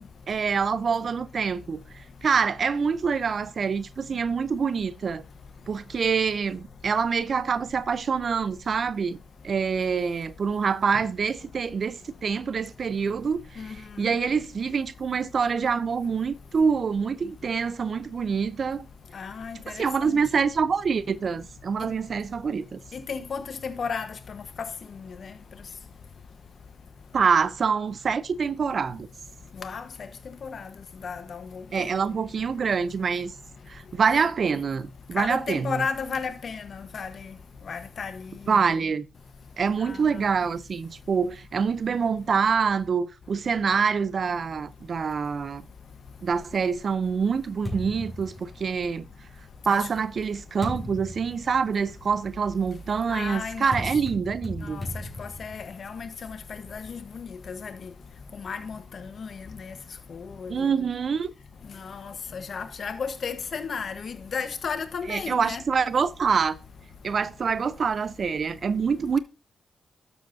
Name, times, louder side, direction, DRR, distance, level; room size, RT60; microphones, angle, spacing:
voice 1, 0.3-1.8 2.2-5.2 5.7-9.2 9.4-18.9 19.7-22.8 27.1-29.1 31.7-33.3 33.7-35.8 38.5-39.1 39.6-45.6 46.2-49.1 49.7-54.8 60.5-61.3 65.1-66.6 67.0-69.2, right 6 dB, 60° right, 0.6 m, -26 dB
voice 2, 19.1-20.2 21.8-21.9 22.9-24.7 25.0-25.3 29.6-29.9 30.4-30.7 31.0-31.9 35.2-37.3 37.7-38.3 39.8-40.0 49.7-49.9 53.1-53.9 54.6-54.8 55.2-57.9 58.4-59.7 60.1-60.5 61.8-65.6, left 5 dB, 65° left, 1.1 m, -34 dB
sound 1, 46.3-49.1 49.9-56.9, left 1 dB, 15° left, 5.1 m, -39 dB
12.0 x 7.2 x 2.7 m
supercardioid pair, 50°, 0 cm